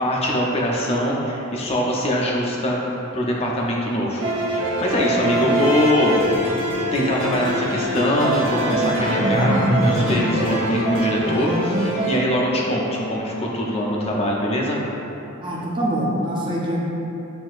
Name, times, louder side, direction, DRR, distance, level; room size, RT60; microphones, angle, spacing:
voice 1, 0.0-2.8 3.1-4.2 4.5-6.1 6.9-14.8, equal, 30° left, -3 dB, 0.6 m, -22 dB
sound 1, 4.2-12.2, right 1 dB, 60° right, 0.8 m, -23 dB
voice 2, 15.4-16.8, right 1 dB, 20° right, -5 dB, 0.6 m, -25 dB
7.6 x 2.8 x 2.4 m, 3.0 s
head